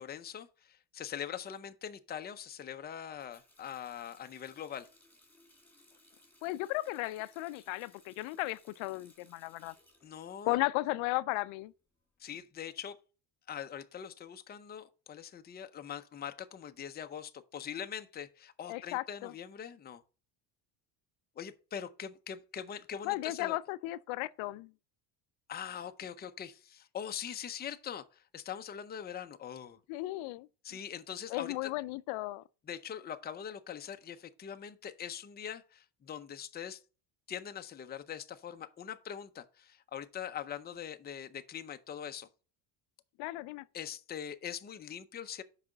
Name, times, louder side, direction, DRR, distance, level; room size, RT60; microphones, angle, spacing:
voice 1, 0.0-4.9 10.0-10.6 12.2-13.0 13.5-20.0 21.4-23.6 25.5-29.8 30.6-31.7 32.7-36.8 37.3-42.3 43.7-45.4, left 8 dB, 20° left, 0.5 m, -42 dB
Water tap faucet, 3.2-10.9 11.3-12.3, left 1 dB, 5° left, 2.0 m, -64 dB
voice 2, 6.4-9.7 10.5-11.7 18.7-19.3 23.0-24.7 29.9-30.5 31.3-32.4 43.2-43.6, left 19 dB, 75° left, 0.5 m, -35 dB
5.9 x 4.9 x 6.5 m
cardioid pair, 115°, 50 cm